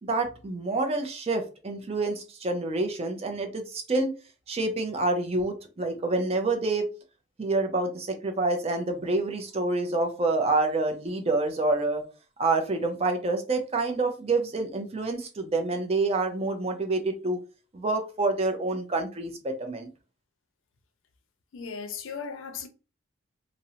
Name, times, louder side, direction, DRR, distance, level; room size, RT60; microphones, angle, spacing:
voice 1, 0.0-4.1 4.5-6.9 7.4-12.0 12.4-17.4 17.7-19.9, right 2 dB, 30° right, 0.4 m, -27 dB
voice 2, 21.5-22.7, left 6 dB, 75° left, 0.5 m, -36 dB
2.5 x 2.0 x 2.7 m
head